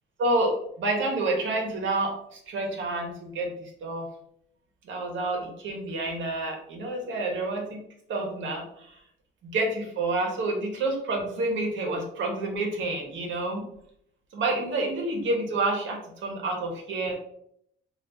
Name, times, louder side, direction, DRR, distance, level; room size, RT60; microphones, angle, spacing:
voice 1, 0.2-3.5 3.8-4.1 4.8-7.8 8.1-9.0 9.4-13.6 14.3-17.1, right 2 dB, 75° right, 0 dB, 1.0 m, -29 dB
2.8 x 2.5 x 3.4 m, 0.71 s
cardioid pair, 90°, 20 cm